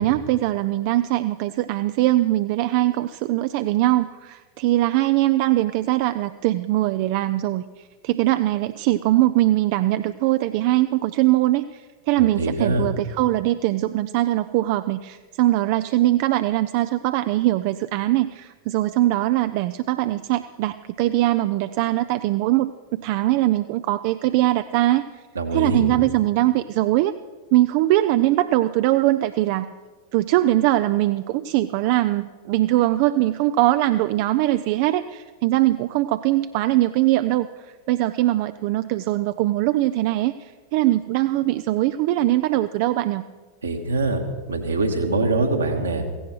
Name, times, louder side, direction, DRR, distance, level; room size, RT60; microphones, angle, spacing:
voice 1, 0.0-7.6 8.0-11.8 12.1-25.0 25.5-27.1 27.5-29.7 30.1-43.2, right 15 dB, 45° right, 12 dB, 0.4 m, -21 dB
voice 2, 12.2-12.9 25.4-25.8 43.6-44.2 44.5-46.0, right 2 dB, 75° right, 3 dB, 1.7 m, -23 dB
16.5 x 16.0 x 4.6 m, 1.4 s
figure-of-eight pair, 90°, 0 cm